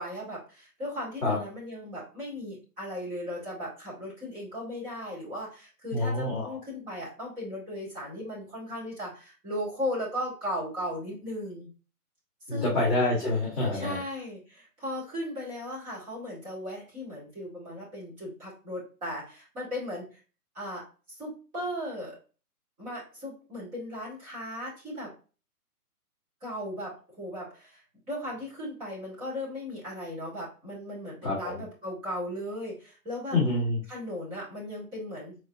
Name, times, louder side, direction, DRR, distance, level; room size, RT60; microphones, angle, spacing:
voice 1, 0.0-11.7 12.5-12.8 13.7-20.1 20.5-22.2 22.8-25.1 26.4-27.8 28.1-33.4 33.9-35.4, left 1 dB, 15° right, -8 dB, 2.2 m, -37 dB
voice 2, 5.9-6.6 12.5-14.0 31.2-31.6 33.3-33.8, left 2 dB, ahead, -17 dB, 1.4 m, -27 dB
4.5 x 4.3 x 2.4 m, 0.35 s
hypercardioid pair, 160°, 47 cm